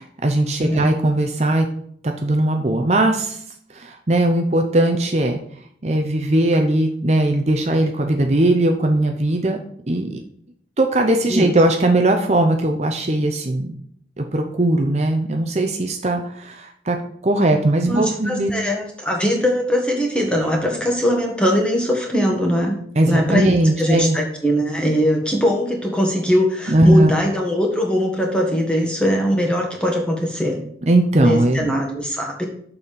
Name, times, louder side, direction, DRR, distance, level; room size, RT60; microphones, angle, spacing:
voice 1, 0.2-1.7 2.0-3.4 3.7-5.4 5.8-9.6 9.9-10.2 10.8-13.7 14.2-17.0 17.2-18.5 23.0-24.2 26.7-27.2 30.9-31.8, right 1 dB, 40° right, 4 dB, 0.7 m, -19 dB
voice 2, 17.9-30.6 31.2-32.5, equal, 5° left, 0 dB, 1.7 m, -21 dB
6.9 x 5.6 x 6.8 m, 0.65 s
head